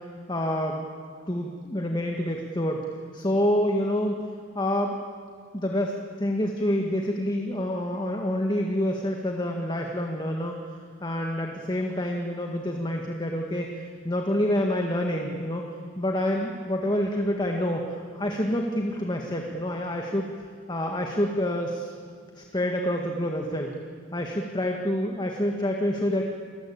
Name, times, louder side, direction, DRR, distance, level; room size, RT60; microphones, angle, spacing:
voice 1, 0.3-0.8 1.3-2.8 3.1-4.9 5.5-10.6 11.0-15.6 16.0-20.3 20.7-21.9 22.4-23.7 24.1-26.2, left 1 dB, 20° left, 2 dB, 1.8 m, -27 dB
29.5 x 20.5 x 8.8 m, 2.1 s
head